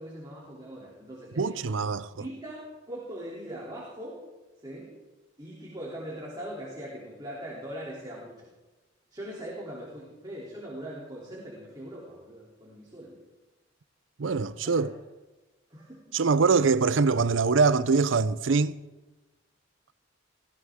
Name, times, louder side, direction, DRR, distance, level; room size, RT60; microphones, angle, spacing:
voice 1, 0.0-1.6 2.1-4.2 4.6-4.9 5.4-8.5 9.1-13.2 14.6-14.9 15.7-16.2, equal, 20° right, 3.2 m, -41 dB
voice 2, 1.4-2.1 14.2-14.9 16.1-18.8, right 4 dB, 80° right, 0.6 m, -23 dB
20.5 x 15.5 x 3.7 m
head